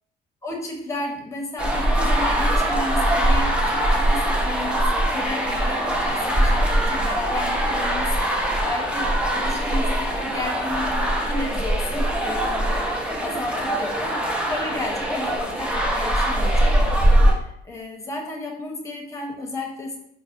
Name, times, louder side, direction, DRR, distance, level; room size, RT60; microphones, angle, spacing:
voice 1, 0.4-4.8 5.1-12.9 13.2-14.2 14.5-20.0, left 2 dB, 15° left, 0 dB, 0.8 m, -33 dB
sound 1, 1.6-17.3, right 1 dB, 5° right, 0.5 m, -22 dB
4.0 x 2.1 x 2.4 m, 0.71 s
cardioid pair, 110°, 17 cm